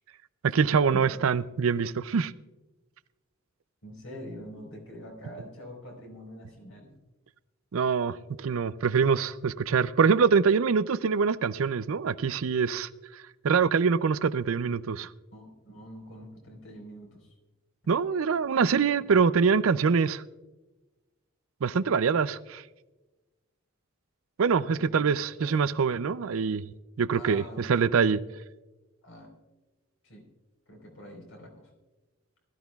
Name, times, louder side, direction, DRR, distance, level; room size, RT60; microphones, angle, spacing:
voice 1, 0.5-2.3 7.7-15.1 17.9-20.2 21.6-22.6 24.4-26.6 27.0-28.2, right 5 dB, 75° right, 0.5 m, -24 dB
voice 2, 3.8-6.9 15.3-17.3 19.1-19.2 24.6-25.1 25.4-25.6 27.1-27.6 29.0-29.3 30.0-30.2 30.7-31.7, equal, 65° left, 4.3 m, -45 dB
20.5 x 13.5 x 2.4 m
head